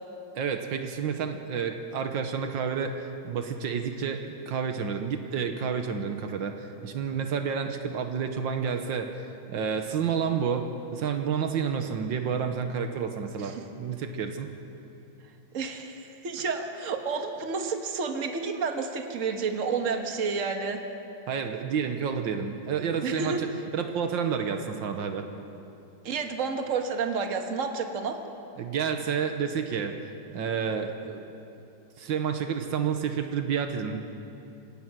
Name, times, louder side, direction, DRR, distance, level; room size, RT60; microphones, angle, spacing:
voice 1, 0.3-14.5 21.3-23.5 23.7-25.3 28.6-31.2 32.0-34.0, right 6 dB, 80° right, 6 dB, 1.8 m, -30 dB
voice 2, 15.5-20.8 23.0-23.4 26.0-28.2, right 5 dB, 45° right, 5 dB, 1.6 m, -30 dB
26.5 x 17.5 x 6.1 m, 2.8 s
omnidirectional pair, 2.1 m